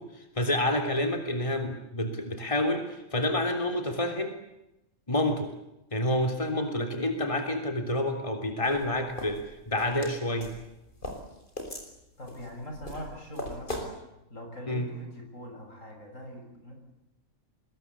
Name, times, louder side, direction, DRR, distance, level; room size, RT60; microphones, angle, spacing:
voice 1, 0.0-4.3 5.1-5.5 5.9-10.5 14.7-14.9, left 1 dB, 25° left, 5 dB, 3.4 m, -28 dB
sound 1, 8.6-13.9, left 1 dB, 40° left, 5.7 m, -39 dB
voice 2, 12.2-14.0 14.3-16.7, equal, 85° left, 3 dB, 7.6 m, -42 dB
25.0 x 21.5 x 8.4 m, 0.89 s
omnidirectional pair, 1.3 m